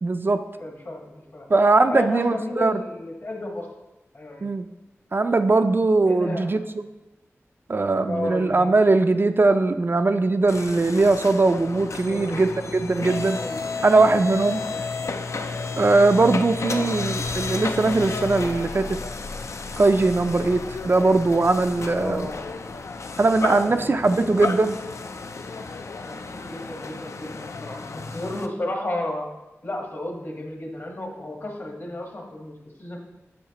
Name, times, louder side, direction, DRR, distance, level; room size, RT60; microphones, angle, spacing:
voice 1, 0.0-0.4 1.5-2.8 4.4-4.7 5.1-6.8 7.7-13.4 13.8-14.6 15.8-19.0 19.8-22.3 23.2-24.8, right 3 dB, 45° right, 8 dB, 0.3 m, -20 dB
voice 2, 0.6-1.5 1.8-3.7 4.1-4.5 6.1-6.6 8.1-8.9 11.9-12.5 13.2-13.7 14.5-14.9 16.7-17.1 21.9-22.4 23.4-24.6 25.9-29.3 29.6-33.0, left 1 dB, 55° left, 1 dB, 1.4 m, -33 dB
sound 1, 10.5-28.5, left 4 dB, 70° left, 0.4 m, -32 dB
8.5 x 6.4 x 2.9 m, 1.0 s
wide cardioid pair, 85°, 5 cm